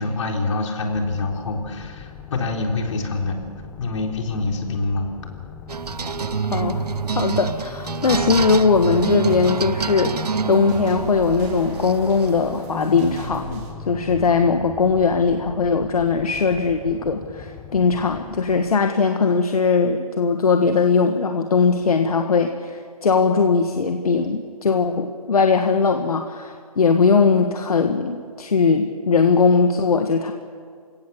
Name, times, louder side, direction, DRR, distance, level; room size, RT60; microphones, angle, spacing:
voice 1, 0.0-3.4 3.8-5.1, left 3 dB, 50° left, 2 dB, 4.0 m, -25 dB
sound 1, 0.9-19.0, left 7 dB, 5° left, 0.5 m, -40 dB
sound 2, 5.7-13.3, right 5 dB, 85° right, 0.9 m, -27 dB
voice 2, 6.5-6.8 7.1-30.3, left 5 dB, 70° left, 5 dB, 1.6 m, -20 dB
sound 3, 8.0-13.7, right 2 dB, 25° right, 5.1 m, -36 dB
29.0 x 17.0 x 7.2 m, 2.1 s
hypercardioid pair, 150°, 20 cm